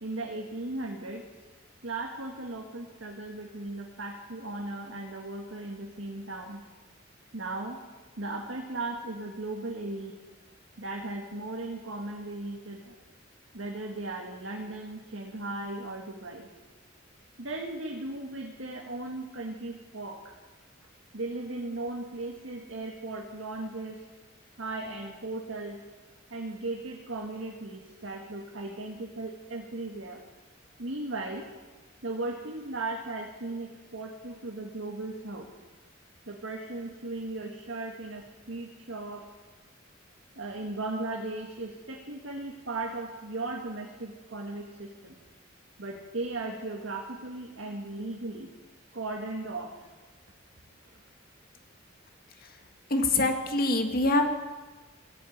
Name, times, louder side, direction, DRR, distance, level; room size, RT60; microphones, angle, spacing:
voice 1, 0.0-1.3 1.8-6.6 7.3-7.8 8.2-10.2 10.8-13.0 13.5-16.5 17.4-20.4 21.1-24.1 24.6-25.8 26.3-30.2 30.8-31.5 32.0-35.5 36.3-39.3 40.4-45.2 45.8-48.5 48.9-49.8, right 2 dB, 75° right, 0 dB, 1.8 m, -37 dB
voice 2, 52.9-54.2, left 2 dB, 50° left, 5 dB, 1.8 m, -24 dB
15.5 x 9.3 x 8.7 m, 1.2 s
head